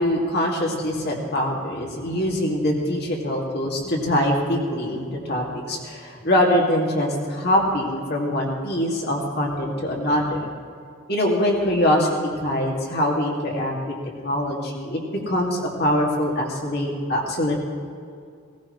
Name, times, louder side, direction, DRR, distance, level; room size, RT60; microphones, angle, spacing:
voice 1, 0.0-10.5 11.1-13.9 14.2-17.5, left 1 dB, 50° left, -1 dB, 2.5 m, -23 dB
18.0 x 17.5 x 3.3 m, 2.3 s
head